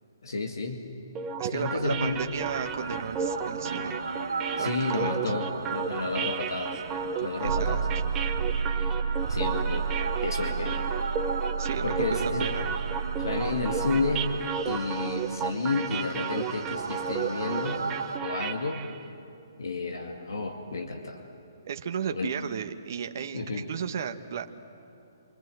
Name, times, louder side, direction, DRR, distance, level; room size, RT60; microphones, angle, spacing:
voice 1, 0.2-0.9 1.5-2.2 4.6-6.8 7.2-7.8 8.8-8.9 9.3-9.8 10.2-10.8 11.8-12.5 13.2-14.3 14.6-17.8 18.2-18.8 19.6-21.2 22.1-22.3 23.3-23.6, left 3 dB, 85° left, 3 dB, 2.3 m, -31 dB
sound 1, 1.1-19.0, right 6 dB, 20° right, 1.1 m, -34 dB
voice 2, 1.4-4.0 4.6-5.4 7.4-7.8 11.6-12.7 21.6-24.5, right 7 dB, 55° right, 7 dB, 1.4 m, -34 dB
sound 2, 1.7-18.2, right 5 dB, 90° right, 2.4 m, -33 dB
27.5 x 26.0 x 7.9 m, 2.7 s
hypercardioid pair, 150°, 2 cm